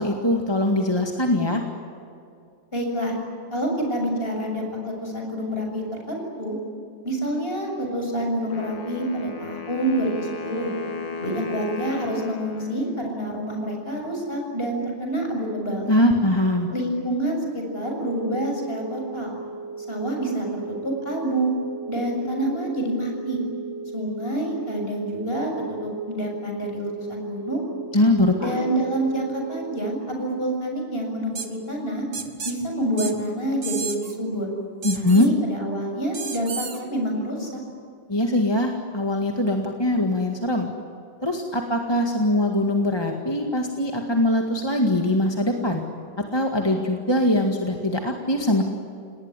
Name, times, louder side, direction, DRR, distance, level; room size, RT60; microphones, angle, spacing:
voice 1, 0.0-1.6 15.9-16.7 27.9-28.8 34.8-35.3 38.1-40.7 41.2-45.8 46.3-48.6, left 1 dB, 15° left, 2 dB, 1.8 m, -22 dB
voice 2, 2.7-3.2 3.5-6.6 7.0-10.7 11.2-15.9 16.7-19.4 19.9-21.5 21.9-23.4 23.9-27.7 28.4-32.1 32.4-34.5 34.9-37.6, right 1 dB, 30° left, 1 dB, 7.2 m, -27 dB
Wind instrument woodwind instrument, 8.5-13.5, left 3 dB, 85° left, 2.7 m, -35 dB
sound 1, 18.0-29.8, right 4 dB, 85° right, 4.1 m, -37 dB
sound 2, 31.4-31.5 32.1-32.6 33.0-33.1 33.6-34.1 34.8-35.3 36.1-36.8, right 5 dB, 55° right, 2.3 m, -32 dB
29.0 x 19.5 x 9.9 m, 2.5 s
omnidirectional pair, 2.0 m